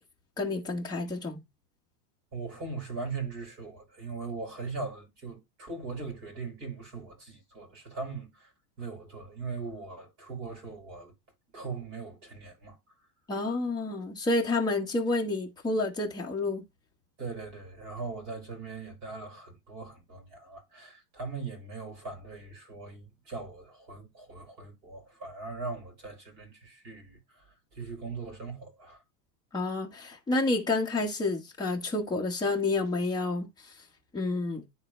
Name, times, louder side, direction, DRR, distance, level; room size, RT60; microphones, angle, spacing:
voice 1, 0.4-1.4 13.3-16.6 29.5-33.5 34.1-34.6, left 2 dB, 10° left, 1.2 m, -29 dB
voice 2, 2.3-8.5 8.8-11.1 11.5-12.8 17.2-27.4 27.7-29.0, right 4 dB, 35° right, 5.1 m, -40 dB
9.9 x 3.9 x 3.2 m
supercardioid pair, 160°, 46 cm